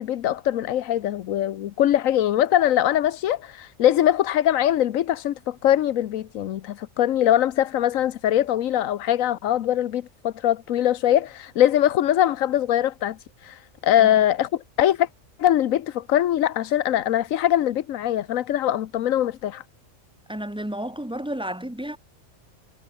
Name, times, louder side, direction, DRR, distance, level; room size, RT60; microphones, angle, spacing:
voice 1, 0.0-13.2 13.4-15.1 15.4-19.6, left 11 dB, 90° left, 1.1 m, -22 dB
voice 2, 20.3-22.0, right 1 dB, 5° right, 0.9 m, -31 dB
omnidirectional pair, 1.4 m